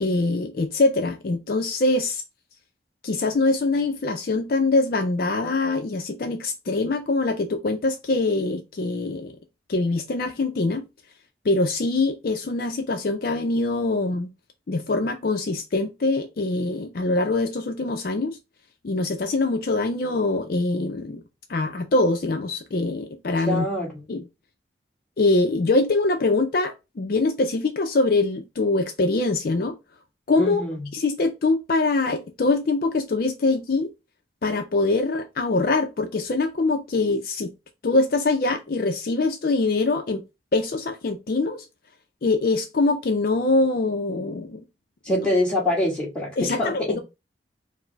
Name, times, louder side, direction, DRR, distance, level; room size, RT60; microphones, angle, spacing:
voice 1, 0.0-2.2 3.0-9.3 9.7-10.8 11.4-14.3 14.7-18.4 18.8-21.2 21.5-23.7 24.1-24.3 25.2-29.8 30.3-30.6 30.9-33.9 34.4-37.5 37.8-40.2 40.5-41.7 42.2-44.6 45.1-45.3 46.4-47.0, left 3 dB, 50° left, 0.4 m, -23 dB
voice 2, 23.5-24.0 30.4-30.9 45.0-47.0, left 1 dB, 5° left, 1.5 m, -25 dB
4.7 x 2.0 x 4.4 m
head